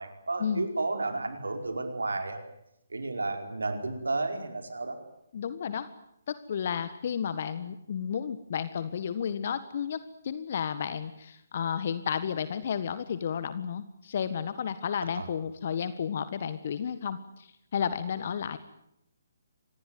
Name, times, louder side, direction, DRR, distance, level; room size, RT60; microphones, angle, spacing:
voice 1, 0.0-2.4 2.9-5.0 15.2-15.3, right 3 dB, 75° right, 6 dB, 4.9 m, -32 dB
voice 2, 5.3-5.9 6.3-10.0 10.2-18.6, left 7 dB, 50° left, 13 dB, 1.6 m, -32 dB
25.5 x 20.0 x 9.6 m, 0.79 s
figure-of-eight pair, 140°, 0 cm